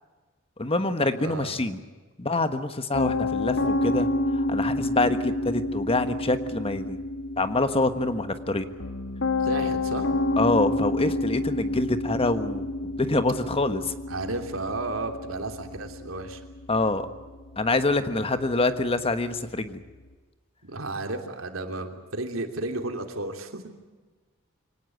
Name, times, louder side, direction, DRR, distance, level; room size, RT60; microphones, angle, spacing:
voice 1, 0.6-1.8 2.2-4.1 4.5-7.0 7.4-8.6 10.4-12.7 13.0-13.9 16.7-17.1 17.6-19.8, left 2 dB, 30° left, 10 dB, 1.4 m, -25 dB
voice 2, 1.2-1.6 9.4-10.1 14.1-16.4 20.6-23.6, right 2 dB, 85° right, 5 dB, 3.0 m, -33 dB
Piano, 2.9-20.1, left 2 dB, 70° left, 2.3 m, -30 dB
24.5 x 18.5 x 9.2 m, 1.3 s
head